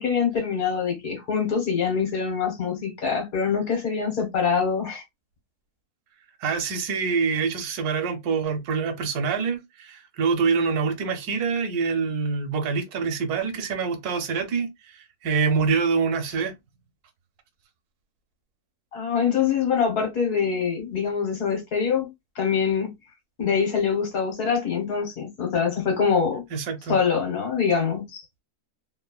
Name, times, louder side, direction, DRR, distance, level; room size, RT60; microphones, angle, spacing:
voice 1, 0.0-5.0 18.9-22.1 22.4-22.9 23.4-26.4 26.9-28.2, left 6 dB, 65° left, 1.6 m, -24 dB
voice 2, 6.4-14.7 14.9-16.5 26.5-27.0, right 5 dB, 80° right, 1.2 m, -25 dB
3.3 x 2.1 x 2.3 m
omnidirectional pair, 1.6 m